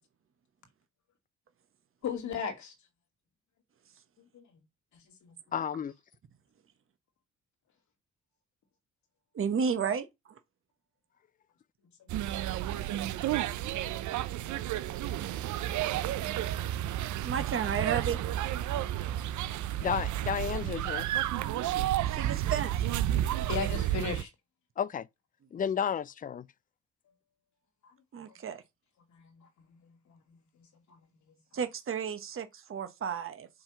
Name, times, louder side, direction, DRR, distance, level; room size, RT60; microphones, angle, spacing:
voice 1, 2.0-2.7 4.2-4.6 5.2-5.4 12.0-12.2 13.0-13.1 14.4-14.6 14.8-15.0 15.3-15.5 19.2-19.5 19.8-19.9 23.4-24.3 29.1-31.4, left 6 dB, 70° left, 2.4 m, -39 dB
voice 2, 5.5-5.9 19.8-21.1 24.8-25.1 25.5-26.5, left 8 dB, 30° left, 0.4 m, -32 dB
voice 3, 9.3-10.4 17.2-18.2 22.1-22.8 28.1-28.6 31.5-33.5, right 7 dB, 45° right, 1.2 m, -32 dB
sound 1, 12.1-24.2, right 13 dB, 75° right, 0.6 m, -31 dB
5.6 x 3.6 x 5.7 m
cardioid pair, 90°, 30 cm